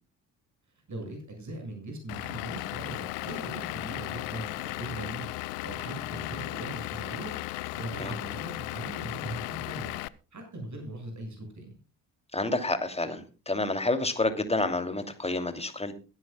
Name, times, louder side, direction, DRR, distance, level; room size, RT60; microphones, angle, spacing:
voice 1, 0.9-5.3 5.6-7.4 7.7-10.0 10.3-11.7, right 2 dB, 35° right, 3 dB, 7.1 m, -40 dB
Vehicle / Engine, 2.1-10.1, left 19 dB, 65° left, 0.8 m, -36 dB
voice 2, 12.3-15.9, left 2 dB, 15° left, 7 dB, 2.8 m, -29 dB
22.0 x 10.5 x 2.3 m, 0.33 s
figure-of-eight pair, 45°, 47 cm